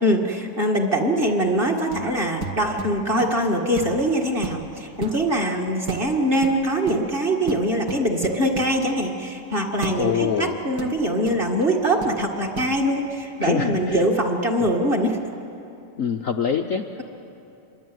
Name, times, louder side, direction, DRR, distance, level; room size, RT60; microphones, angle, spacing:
voice 1, 0.0-15.2, right 1 dB, 25° right, 0 dB, 2.0 m, -23 dB
sound 1, 1.9-2.1 2.4-3.4 3.8-4.0 4.4-5.2 5.9-6.1 6.4-7.0 7.5-8.8 9.8-10.0 10.8-11.7 12.0-12.2 12.5-12.8, right 4 dB, 45° right, 1.9 m, -34 dB
voice 2, 10.0-10.6 13.4-14.0 16.0-16.9, left 7 dB, 75° left, 5 dB, 0.7 m, -24 dB
26.5 x 23.0 x 9.2 m, 2.7 s
omnidirectional pair, 2.4 m